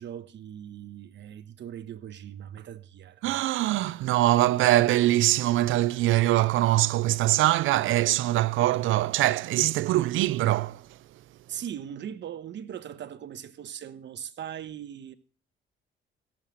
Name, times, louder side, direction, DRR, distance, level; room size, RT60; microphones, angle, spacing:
voice 1, 0.0-3.4 11.5-15.1, right 9 dB, 65° right, 1.1 m, -40 dB
voice 2, 3.2-10.9, right 15 dB, 85° right, 0.5 m, -23 dB
16.5 x 7.5 x 6.4 m
cardioid pair, 90°, 20 cm